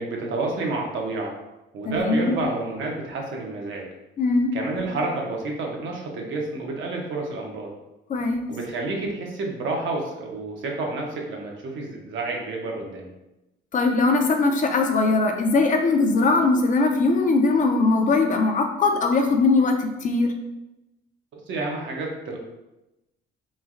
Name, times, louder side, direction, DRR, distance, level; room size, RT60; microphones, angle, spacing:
voice 1, 0.0-1.4 1.7-3.9 4.5-7.7 8.5-13.1 21.3-22.4, right 2 dB, 75° right, 0 dB, 0.7 m, -29 dB
voice 2, 1.9-2.4 4.2-4.5 8.1-8.4 13.7-20.3, left 3 dB, 40° left, 4 dB, 0.4 m, -20 dB
3.1 x 2.3 x 2.4 m, 0.95 s
cardioid pair, 90°, 20 cm